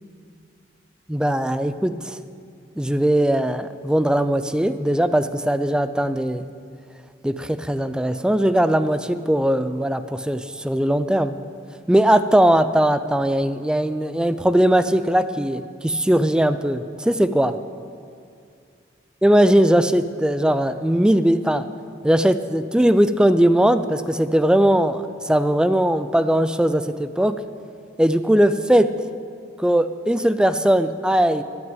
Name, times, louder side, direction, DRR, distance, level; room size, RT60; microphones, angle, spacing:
voice 1, 1.1-2.2 2.8-6.5 7.2-11.4 11.9-17.6 19.2-21.7 22.0-27.4 28.0-29.0 29.6-31.4, right 1 dB, 5° right, 12 dB, 0.3 m, -19 dB
12.0 x 6.1 x 9.1 m, 2.3 s
head